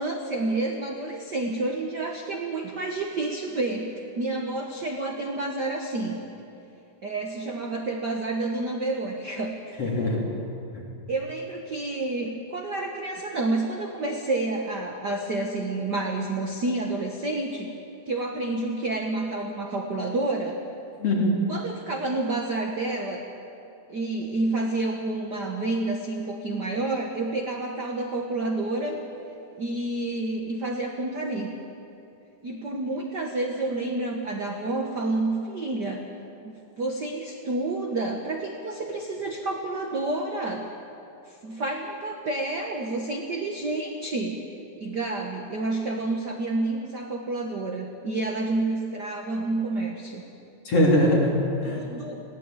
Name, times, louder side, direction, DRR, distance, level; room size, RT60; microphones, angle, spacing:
voice 1, 0.0-6.2 7.0-10.1 11.1-17.7 18.0-20.5 21.5-23.2 23.9-29.0 29.6-31.5 32.4-36.0 36.4-40.7 41.2-44.4 44.8-50.2 51.6-52.2, right 2 dB, 55° right, 2 dB, 1.2 m, -29 dB
voice 2, 9.8-10.3 10.7-10.8 21.0-21.3 50.7-51.8, left 1 dB, 45° left, -2 dB, 4.2 m, -22 dB
20.5 x 16.5 x 9.1 m, 2.8 s
omnidirectional pair, 3.8 m